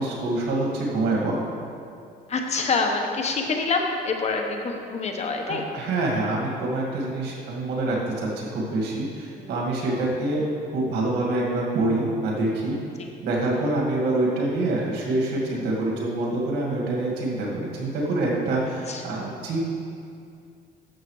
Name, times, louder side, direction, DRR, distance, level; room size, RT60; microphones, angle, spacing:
voice 1, 0.0-1.4 5.5-10.5 10.7-12.8 13.2-19.7, right 2 dB, 80° right, -3 dB, 2.1 m, -26 dB
voice 2, 2.3-5.7 9.3-9.5 13.0-13.1 15.5-15.6 18.9-19.4, left 4 dB, 40° left, 3 dB, 1.0 m, -27 dB
12.5 x 7.1 x 3.2 m, 2.4 s
cardioid pair, 110°, 17 cm